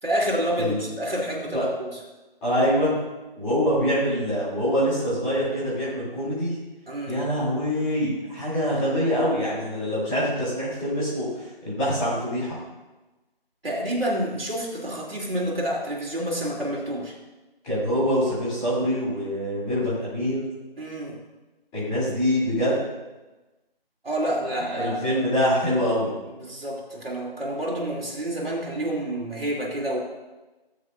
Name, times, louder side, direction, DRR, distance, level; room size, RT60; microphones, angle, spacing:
voice 1, 0.0-1.9 6.9-7.2 13.6-17.1 20.8-21.1 24.0-25.2 26.4-30.0, right 1 dB, 70° right, -3 dB, 3.5 m, -28 dB
voice 2, 2.4-3.0 3.3-6.5 7.1-12.5 17.6-20.5 21.7-22.9 24.4-26.1, equal, 5° left, -15 dB, 3.2 m, -25 dB
19.0 x 8.2 x 2.7 m, 1.1 s
figure-of-eight pair, 170°, 30 cm